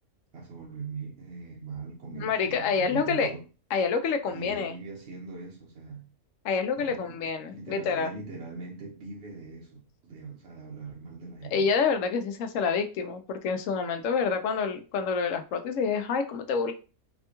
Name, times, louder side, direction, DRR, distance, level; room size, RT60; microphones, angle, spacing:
voice 1, 0.3-3.5 4.3-6.1 6.7-11.7, right 4 dB, 55° right, 0.9 m, -41 dB
voice 2, 2.1-3.3 3.7-4.7 6.4-8.1 11.5-16.7, left 5 dB, 70° left, 0.9 m, -27 dB
4.2 x 2.2 x 2.9 m
omnidirectional pair, 1.5 m